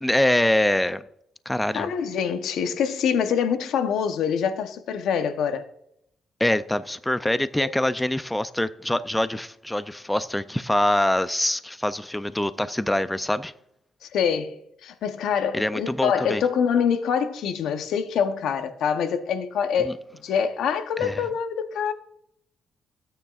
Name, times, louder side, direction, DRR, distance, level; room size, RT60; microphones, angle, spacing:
voice 1, 0.0-1.0 1.5-1.9 6.4-13.5 15.5-16.4 19.9-20.0 21.0-21.2, left 1 dB, 10° left, 0.4 m, -24 dB
voice 2, 1.7-5.6 7.6-7.7 14.0-20.0 20.2-21.9, left 7 dB, 75° left, 0.9 m, -25 dB
16.0 x 9.0 x 2.4 m
cardioid pair, 90°, 0 cm